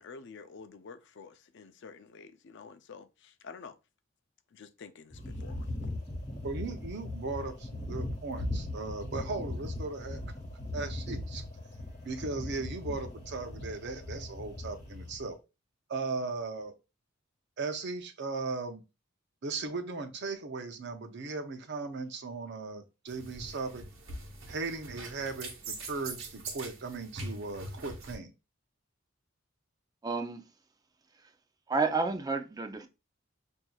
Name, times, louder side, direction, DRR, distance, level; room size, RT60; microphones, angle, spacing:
voice 1, 0.0-3.7 4.5-5.7, left 5 dB, 60° left, 0.5 m, -49 dB
sound 1, 5.1-15.3, left 1 dB, 30° left, 1.4 m, -39 dB
voice 2, 6.4-10.2 10.7-11.4 12.0-15.4 15.9-16.7 17.6-18.8 19.4-23.9 24.5-28.3, right 3 dB, 60° right, 0.6 m, -37 dB
sound 2, 23.1-28.2, right 2 dB, 75° right, 1.0 m, -43 dB
voice 3, 30.0-30.4 31.7-32.9, right 4 dB, 20° right, 0.5 m, -30 dB
5.9 x 2.7 x 2.3 m
head